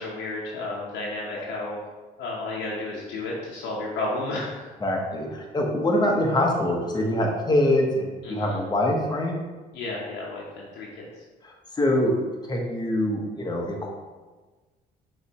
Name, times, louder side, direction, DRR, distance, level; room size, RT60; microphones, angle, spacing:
voice 1, 0.0-1.8 2.2-4.7 8.2-8.6 9.7-11.0, left 2 dB, 70° left, -4 dB, 1.0 m, -32 dB
voice 2, 4.8-9.3 11.4-12.2 12.5-13.9, left 1 dB, 25° left, 0 dB, 1.1 m, -24 dB
5.3 x 3.3 x 3.0 m, 1.3 s
supercardioid pair, 80°, 18 cm